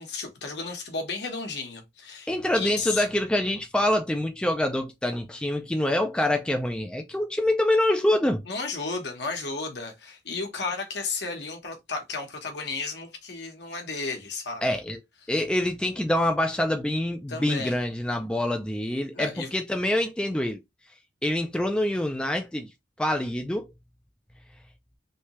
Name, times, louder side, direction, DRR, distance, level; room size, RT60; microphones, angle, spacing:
voice 1, 0.0-3.1 8.4-14.6 15.2-15.3 17.3-17.8 19.1-19.5, left 4 dB, 65° left, 1.0 m, -33 dB
voice 2, 2.3-8.4 14.6-15.0 15.3-20.6 21.2-22.7 23.0-23.7, left 1 dB, 5° left, 0.3 m, -25 dB
3.2 x 2.7 x 3.0 m
head